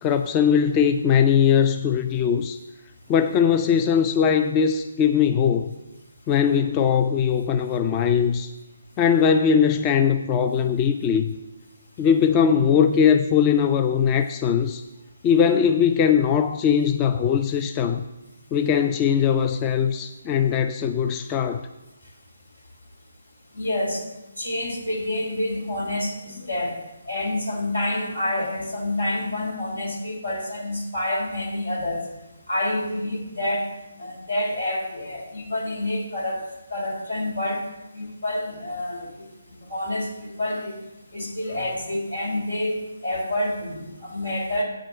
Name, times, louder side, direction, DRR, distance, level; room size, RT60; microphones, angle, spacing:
voice 1, 0.0-2.6 3.1-5.7 6.3-8.5 9.0-11.3 12.0-14.8 15.2-18.0 18.5-21.6, left 7 dB, 20° left, 7 dB, 0.4 m, -20 dB
voice 2, 23.5-24.0 24.4-26.7 27.1-32.0 32.5-33.6 34.0-36.4 36.7-37.6 38.0-39.2 39.7-40.8 41.1-44.6, left 1 dB, 80° left, -1 dB, 3.2 m, -28 dB
8.8 x 5.1 x 7.5 m, 0.98 s
figure-of-eight pair, 145°, 0 cm